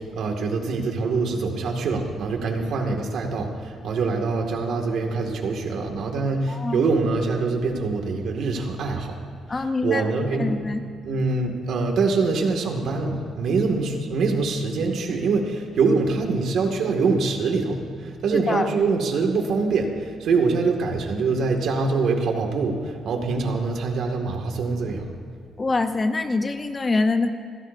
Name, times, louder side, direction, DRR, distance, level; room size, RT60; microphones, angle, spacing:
voice 1, 0.0-9.2 9.8-10.6 11.0-25.1, right 4 dB, 65° right, 3 dB, 2.2 m, -24 dB
voice 2, 6.5-6.8 9.5-10.0 10.4-10.8 18.3-18.7 25.6-27.3, left 3 dB, 25° left, 7 dB, 0.8 m, -24 dB
28.0 x 16.0 x 2.7 m, 2.3 s
cardioid pair, 140°, 0 cm